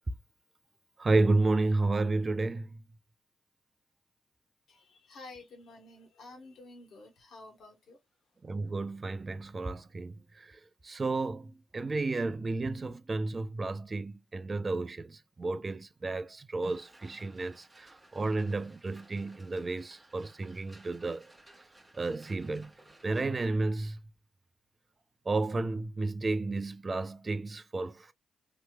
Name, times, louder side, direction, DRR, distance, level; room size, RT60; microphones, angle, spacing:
voice 1, 1.0-2.8 8.4-21.3 21.9-22.7 23.0-24.0 25.3-28.1, right 3 dB, 40° right, 0.4 m, -32 dB
voice 2, 4.7-8.0, left 2 dB, 70° left, 1.2 m, -51 dB
sound 1, 16.6-23.2, right 1 dB, 15° right, 1.2 m, -58 dB
2.9 x 2.9 x 2.2 m
supercardioid pair, 50°, 0 cm